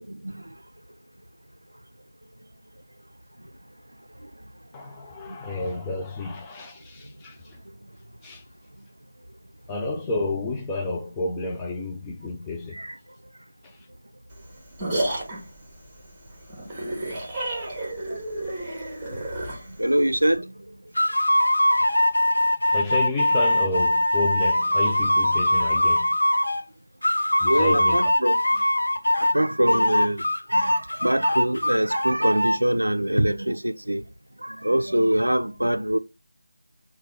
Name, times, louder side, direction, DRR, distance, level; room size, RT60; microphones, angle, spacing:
voice 1, 4.7-7.6 8.2-8.4 9.7-12.8 13.6-13.8 22.6-26.1 27.4-28.1, left 2 dB, 10° left, 0.4 m, -30 dB
sound 1, 14.3-20.4, right 1 dB, 10° right, 1.1 m, -31 dB
voice 2, 19.8-20.6 27.5-28.4 29.1-30.2 30.5-34.0 34.4-36.0, right 1 dB, 90° right, 0.4 m, -24 dB
sound 2, 20.9-26.6 27.0-29.4 29.7-32.6, left 1 dB, 75° left, 0.5 m, -22 dB
3.4 x 2.3 x 3.4 m
figure-of-eight pair, 165°, 0 cm